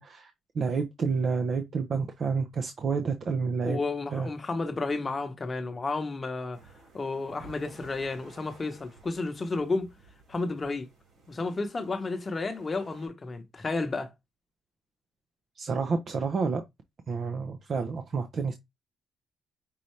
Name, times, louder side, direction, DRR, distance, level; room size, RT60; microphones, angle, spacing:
voice 1, 0.0-3.8 4.1-4.3 15.6-16.6 17.1-18.5, right 5 dB, 50° right, 0.6 m, -29 dB
voice 2, 3.6-6.6 6.9-9.9 10.3-10.9 11.3-14.1, left 3 dB, 30° left, 0.9 m, -32 dB
sound 1, 6.5-13.1, right 3 dB, 80° right, 2.6 m, -54 dB
5.5 x 2.6 x 3.2 m
cardioid pair, 90°, 0 cm